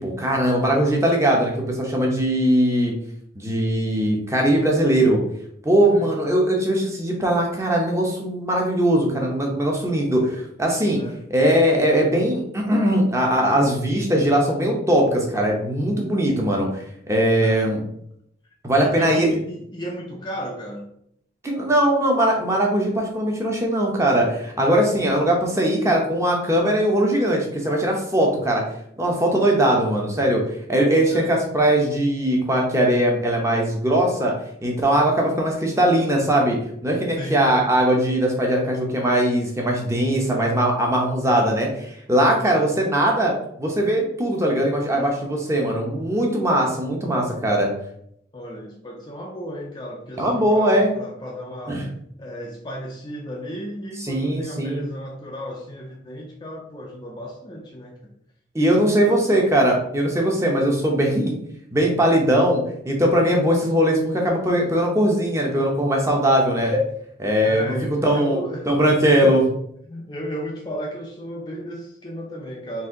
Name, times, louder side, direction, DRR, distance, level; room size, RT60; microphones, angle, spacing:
voice 1, 0.0-2.9 3.4-5.2 5.6-11.0 11.3-16.8 17.1-17.8 18.6-19.4 21.4-28.6 29.0-30.4 30.7-34.3 34.6-43.3 43.6-47.7 50.2-50.9 51.7-51.8 54.1-54.8 58.5-61.3 61.7-66.8 67.2-67.8 68.0-68.4 68.7-69.4, right 1 dB, 15° right, 0 dB, 0.8 m, -20 dB
voice 2, 18.7-20.9 24.9-25.1 31.1-31.3 34.9-35.2 37.2-37.6 42.4-42.7 48.3-51.8 52.2-58.1 58.9-59.3 67.4-68.7 69.2-69.4 69.9-72.9, equal, 20° left, -1 dB, 0.4 m, -34 dB
4.1 x 2.6 x 3.7 m, 0.72 s
head